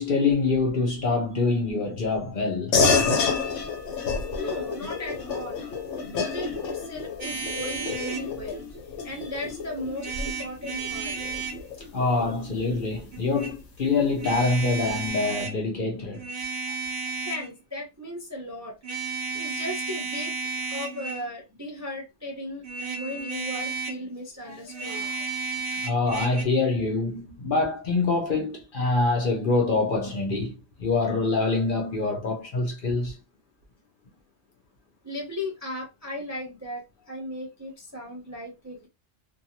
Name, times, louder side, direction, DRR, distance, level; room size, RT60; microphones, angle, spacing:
voice 1, 0.0-2.8 11.9-16.2 25.8-30.5 30.8-33.1, left 3 dB, 50° left, 0.7 m, -25 dB
sound 1, 2.7-12.6, left 5 dB, 75° left, 1.0 m, -29 dB
voice 2, 4.4-5.6 6.0-8.7 9.0-11.1 16.7-16.8 17.2-18.7 19.3-25.5 35.0-38.9, left 1 dB, 25° right, 0.4 m, -36 dB
sound 2, 7.2-8.3 10.0-11.6 13.1-13.5 14.2-15.6 16.1-17.5 18.8-21.3 22.6-24.0 24.7-26.4, right 4 dB, 55° right, 0.8 m, -33 dB
2.5 x 2.3 x 2.8 m
omnidirectional pair, 1.3 m